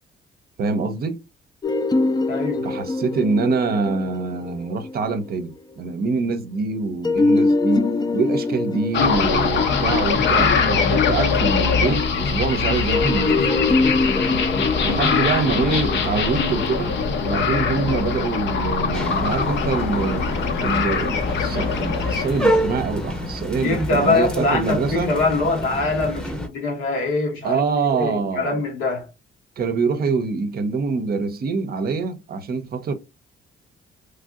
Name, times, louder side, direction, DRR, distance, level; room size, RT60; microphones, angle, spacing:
voice 1, 0.6-1.2 2.6-13.5 14.8-17.0 17.2-20.3 20.6-25.1 27.4-28.6 29.6-32.9, right 4 dB, 50° right, 0.6 m, -25 dB
sound 1, 1.6-5.5 7.0-11.5 12.9-18.1, left 2 dB, 20° left, 0.4 m, -25 dB
voice 2, 2.3-2.7 23.6-27.6 27.9-29.1, left 3 dB, 85° left, 1.2 m, -23 dB
sound 2, 8.9-23.3, left 5 dB, 65° left, 0.7 m, -22 dB
sound 3, 18.9-26.5, equal, 5° left, 0.8 m, -28 dB
3.3 x 2.6 x 2.4 m
cardioid pair, 90°, 20 cm